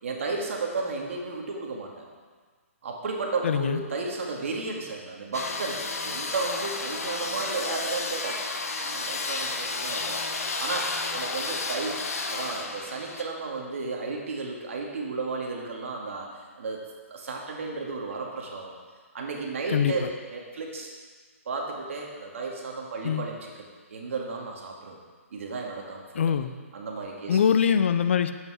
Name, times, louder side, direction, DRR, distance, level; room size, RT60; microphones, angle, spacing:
voice 1, 0.0-2.0 2.8-8.5 8.8-10.2 10.6-12.0 12.3-16.8 17.1-18.7 19.1-20.9 21.5-25.0 25.3-26.2 26.7-27.4, right 3 dB, 60° right, 0 dB, 2.0 m, -33 dB
voice 2, 3.4-3.8 19.7-20.1 23.0-23.3 26.1-26.5 27.3-28.3, left 7 dB, 55° left, 9 dB, 0.6 m, -23 dB
sound 1, 5.3-13.2, left 3 dB, 85° left, 1.1 m, -32 dB
9.5 x 8.3 x 4.9 m, 1.5 s
hypercardioid pair, 160°, 8 cm